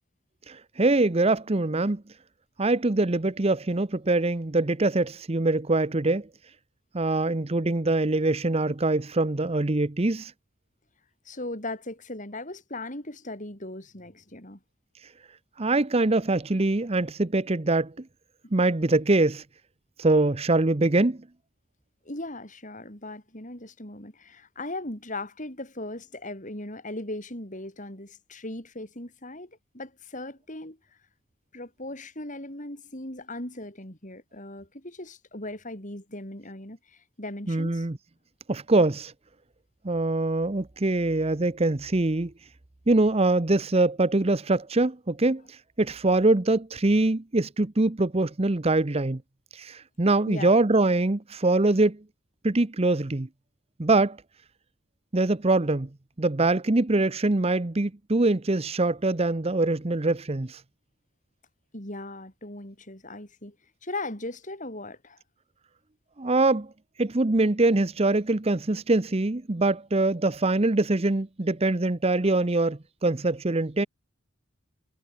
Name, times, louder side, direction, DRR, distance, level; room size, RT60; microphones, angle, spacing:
voice 1, 0.5-2.0 2.6-6.3 6.9-10.3 15.6-17.9 18.5-19.4 20.0-21.2 37.5-38.0 38.5-39.1 39.8-42.3 42.9-49.2 49.5-52.0 52.4-53.3 53.8-54.2 55.1-55.9 56.2-60.6 66.2-66.7 67.0-73.9, right 2 dB, 30° right, 0.8 m, -23 dB
voice 2, 11.2-14.6 22.0-30.8 31.5-37.9 50.3-50.6 61.7-63.5 63.8-65.2, left 2 dB, 40° left, 6.6 m, -38 dB
head